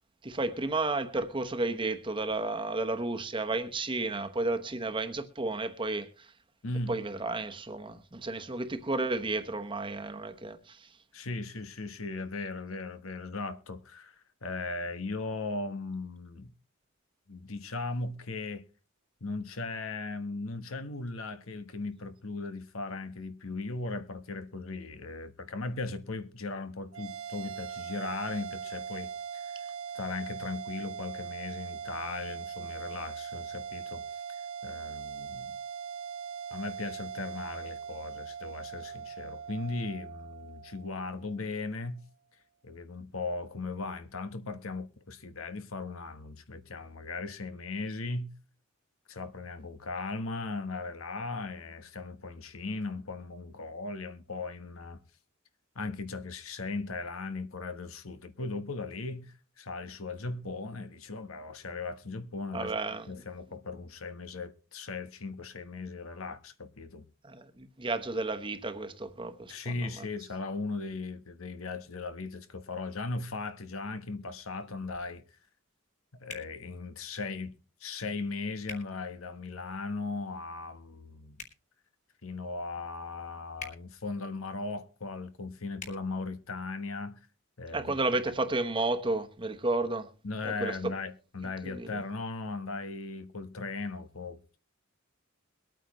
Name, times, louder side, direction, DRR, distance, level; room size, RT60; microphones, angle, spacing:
voice 1, 0.2-6.1 6.9-10.9 62.5-63.1 67.2-69.5 87.7-90.1 90.4-90.9 91.6-92.0, right 2 dB, 25° right, 1.0 m, -32 dB
voice 2, 6.6-7.0 11.1-16.5 17.3-18.7 19.2-29.5 29.9-34.2 34.6-35.6 36.5-42.0 42.6-48.3 49.1-55.0 55.7-62.7 63.1-67.0 69.5-75.2 76.1-77.5 77.8-81.4 82.2-87.2 87.6-87.9 90.2-94.4, left 3 dB, 85° left, 1.2 m, -38 dB
sound 1, 26.9-41.5, right 7 dB, 85° right, 1.2 m, -41 dB
sound 2, 76.3-76.5 78.6-78.8 81.3-81.6 83.6-83.8 85.8-86.0, left 3 dB, 35° left, 2.8 m, -42 dB
22.5 x 9.1 x 3.1 m
head